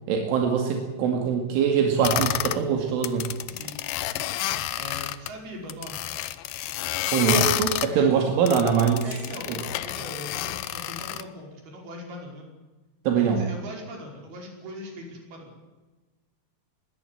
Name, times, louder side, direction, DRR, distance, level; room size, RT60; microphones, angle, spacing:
voice 1, 0.1-3.3 7.1-9.1 13.1-13.5, right 7 dB, 85° right, 3 dB, 4.7 m, -23 dB
sound 1, 2.0-2.6 2.9-5.3 5.7-7.9 8.5-11.2, left 14 dB, 85° left, 2.1 m, -29 dB
voice 2, 3.5-6.1 8.0-8.3 9.0-12.5 13.1-15.6, equal, 55° right, 1 dB, 6.9 m, -41 dB
21.0 x 16.0 x 10.0 m, 1.2 s
omnidirectional pair, 5.5 m